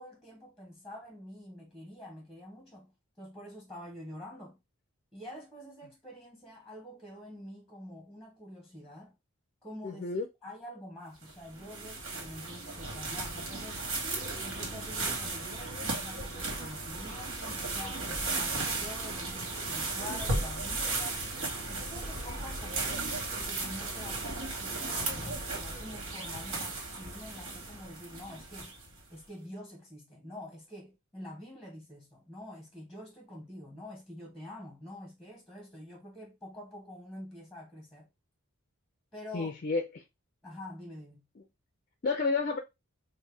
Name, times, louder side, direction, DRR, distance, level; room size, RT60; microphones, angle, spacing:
voice 1, 0.0-4.6 5.1-9.2 9.6-10.0 10.4-13.9 14.4-21.2 21.7-23.0 23.4-28.8 29.1-38.1 39.1-39.5 40.4-41.2, left 1 dB, ahead, 1.0 m, -47 dB
voice 2, 9.8-10.3 39.3-40.0 42.0-42.6, left 4 dB, 40° left, 0.4 m, -30 dB
sound 1, 11.2-29.0, right 2 dB, 70° right, 1.7 m, -35 dB
5.2 x 2.2 x 3.3 m
head